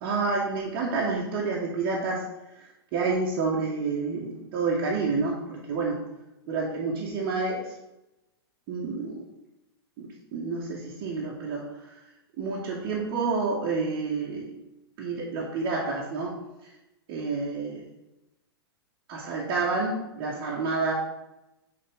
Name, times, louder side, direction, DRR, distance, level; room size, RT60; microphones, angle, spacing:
voice 1, 0.0-2.2 2.9-6.0 6.5-7.7 8.7-9.2 10.0-11.7 12.4-14.5 15.0-16.4 17.1-17.8 19.1-20.9, right 4 dB, 40° right, -5 dB, 1.4 m, -29 dB
10.0 x 3.9 x 3.5 m, 0.94 s
figure-of-eight pair, 105°, 14 cm